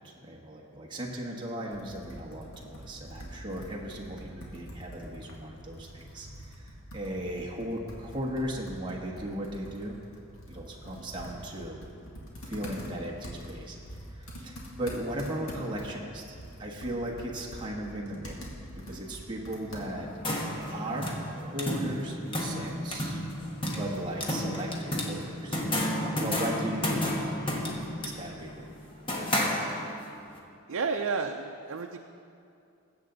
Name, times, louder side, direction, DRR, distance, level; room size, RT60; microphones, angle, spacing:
voice 1, 0.0-10.0 10.5-11.8 12.4-13.8 14.1-18.5 18.8-23.2 23.6-27.7 28.0-28.5, right 1 dB, 20° right, -2 dB, 1.3 m, -37 dB
Computer keyboard, 1.7-20.2, equal, 75° left, 2.1 m, -45 dB
sound 1, 20.0-30.1, left 1 dB, 25° left, 1.3 m, -32 dB
voice 2, 30.7-32.0, right 4 dB, 80° right, 3 dB, 0.6 m, -31 dB
20.5 x 7.9 x 4.0 m, 2.5 s
head